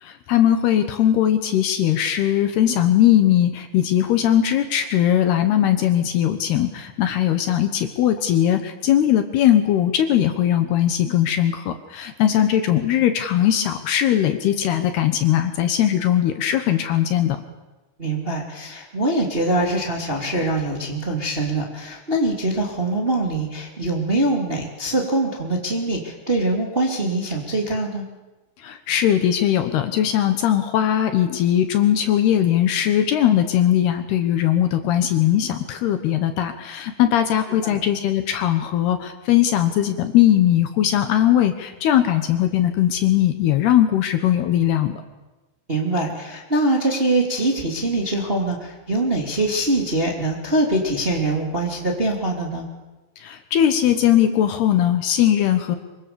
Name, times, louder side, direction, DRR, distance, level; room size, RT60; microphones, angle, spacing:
voice 1, 0.0-17.4 28.6-45.0 53.2-55.8, left 11 dB, 70° left, 8 dB, 2.8 m, -19 dB
voice 2, 18.0-28.1 37.6-37.8 45.7-52.6, right 2 dB, 15° right, 0 dB, 2.1 m, -23 dB
25.5 x 24.0 x 7.0 m, 1.1 s
omnidirectional pair, 5.6 m